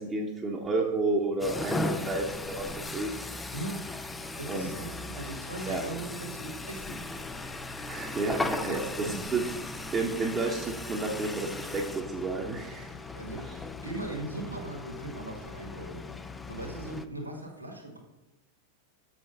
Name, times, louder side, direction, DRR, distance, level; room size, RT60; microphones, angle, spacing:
voice 1, 0.0-3.1 4.5-4.7 5.1-5.2 5.7-5.8 7.9-8.8 9.3-12.9, right 3 dB, 20° right, -3 dB, 1.0 m, -31 dB
sound 1, 1.4-17.1, left 2 dB, 10° left, 0.5 m, -37 dB
voice 2, 3.5-3.9 4.4-7.1 8.7-9.3 13.1-16.1 16.5-18.0, right 2 dB, 85° right, 0 dB, 1.6 m, -39 dB
7.4 x 5.9 x 5.5 m, 0.98 s
figure-of-eight pair, 90°, 0 cm